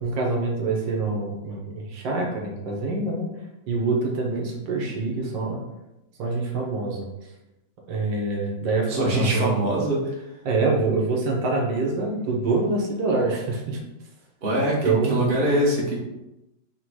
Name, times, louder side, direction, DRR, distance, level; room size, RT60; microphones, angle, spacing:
voice 1, 0.0-3.3 3.7-5.6 6.2-7.3 7.9-9.5 10.4-13.8 14.8-15.3, right 3 dB, 75° right, -1 dB, 1.5 m, -25 dB
voice 2, 8.9-10.2 14.4-16.0, right 1 dB, 40° right, -3 dB, 0.9 m, -23 dB
4.2 x 2.2 x 4.6 m, 0.95 s
omnidirectional pair, 2.1 m